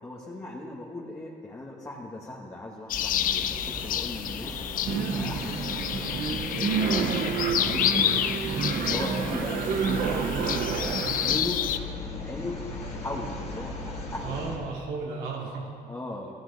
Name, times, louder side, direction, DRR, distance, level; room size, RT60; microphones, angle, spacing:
voice 1, 0.0-7.1 7.6-8.1 8.9-10.5 11.1-11.6 12.2-14.4 15.9-16.3, left 2 dB, 15° left, -3 dB, 1.4 m, -38 dB
sound 1, 2.9-11.8, left 10 dB, 55° left, 0.5 m, -30 dB
sound 2, 2.9-14.6, left 1 dB, 40° left, 2.3 m, -38 dB
sound 3, 4.9-11.4, right 6 dB, 60° right, 0.8 m, -29 dB
voice 2, 7.4-8.0 8.5-8.9 10.9-11.5 14.2-15.7, right 4 dB, 80° right, -3 dB, 3.0 m, -37 dB
14.0 x 12.0 x 4.0 m, 2.2 s
cardioid pair, 110°, 17 cm